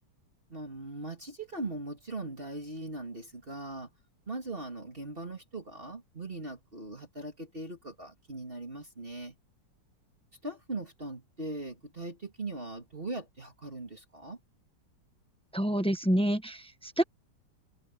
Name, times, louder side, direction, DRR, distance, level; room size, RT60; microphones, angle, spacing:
voice 1, 0.5-3.9 4.3-9.4 10.4-14.4, right 2 dB, 30° right, 2.8 m, -40 dB
voice 2, 15.5-17.0, equal, 5° left, 0.6 m, -28 dB
open air
omnidirectional pair, 2.0 m